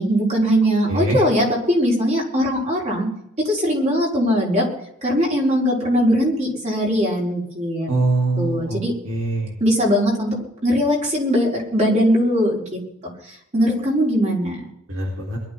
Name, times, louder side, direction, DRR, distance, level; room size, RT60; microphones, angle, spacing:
voice 1, 0.0-3.1 3.4-4.6 5.0-7.9 8.4-8.9 9.6-10.4 10.6-12.8 13.5-14.6, equal, 35° right, -2 dB, 5.4 m, -20 dB
voice 2, 0.9-1.2 7.9-9.5 14.9-15.4, right 2 dB, 75° right, -3 dB, 4.8 m, -23 dB
22.5 x 12.5 x 4.1 m, 0.77 s
head